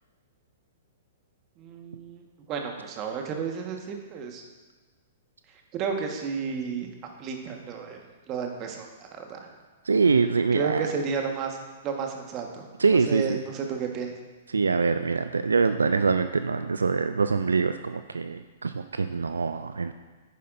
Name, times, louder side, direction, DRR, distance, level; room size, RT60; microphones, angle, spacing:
voice 1, 1.6-4.4 5.7-6.9 7.2-8.0 8.3-9.5 10.5-11.6 11.8-12.7 13.1-14.1, right 6 dB, 35° right, 2 dB, 1.4 m, -32 dB
voice 2, 9.8-10.9 12.8-13.4 14.5-19.9, right 4 dB, 80° right, 10 dB, 0.3 m, -24 dB
10.0 x 9.6 x 2.6 m, 1.3 s
figure-of-eight pair, 110°, 0 cm